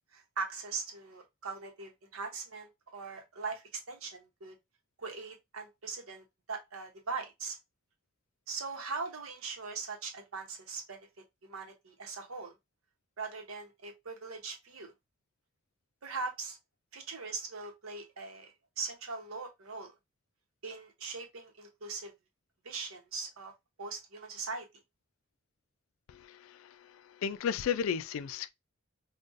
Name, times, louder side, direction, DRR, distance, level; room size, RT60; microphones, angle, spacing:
voice 1, 0.1-4.6 5.0-7.6 8.5-11.1 11.4-12.6 13.2-14.9 16.0-16.6 16.9-19.9 20.6-22.1 22.6-23.5 23.8-24.7, right 4 dB, 90° right, 0.9 m, -40 dB
voice 2, 26.1-28.5, left 7 dB, 75° left, 0.3 m, -34 dB
3.9 x 2.3 x 2.5 m
head